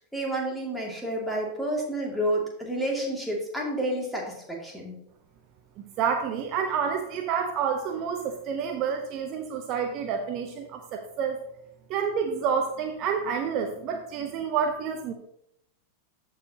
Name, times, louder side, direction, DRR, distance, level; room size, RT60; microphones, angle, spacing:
voice 1, 0.0-5.0, right 1 dB, ahead, -2 dB, 2.4 m, -30 dB
voice 2, 5.8-11.4 11.9-15.1, right 6 dB, 40° right, 5 dB, 0.7 m, -29 dB
14.0 x 4.9 x 2.9 m, 0.77 s
figure-of-eight pair, 90°, 0 cm